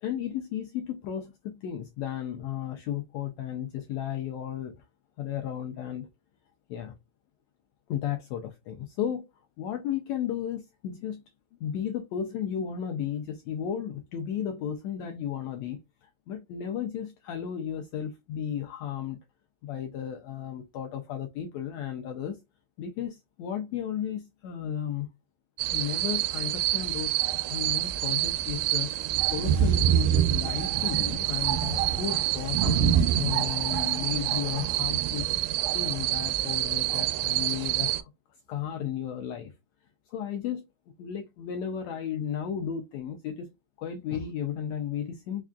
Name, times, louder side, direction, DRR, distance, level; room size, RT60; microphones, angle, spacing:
voice 1, 0.0-4.8 5.2-6.1 6.7-6.9 7.9-9.3 9.6-11.2 11.6-19.2 19.6-22.4 22.8-25.1 25.7-28.9 29.3-35.3 35.7-38.1 38.5-39.5 40.1-40.6 41.0-43.5 43.8-45.4, left 9 dB, 90° left, 1.5 m, -34 dB
sound 1, 25.6-38.0, right 11 dB, 90° right, 2.2 m, -26 dB
5.2 x 2.4 x 2.2 m
omnidirectional pair, 3.7 m